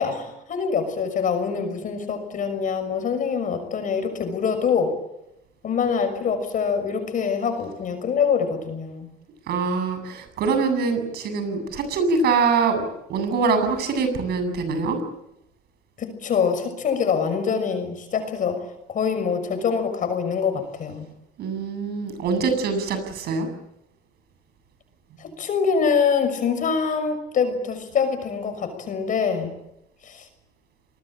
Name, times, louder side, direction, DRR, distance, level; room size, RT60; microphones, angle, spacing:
voice 1, 0.0-4.9 5.6-9.1 16.0-18.6 18.9-21.1 25.2-29.5 30.0-30.3, left 6 dB, 50° left, 8 dB, 6.3 m, -24 dB
voice 2, 9.5-12.8 13.1-15.0 21.4-23.5, right 4 dB, 70° right, 8 dB, 8.0 m, -24 dB
28.0 x 20.5 x 9.0 m, 0.84 s
cardioid pair, 110°, 17 cm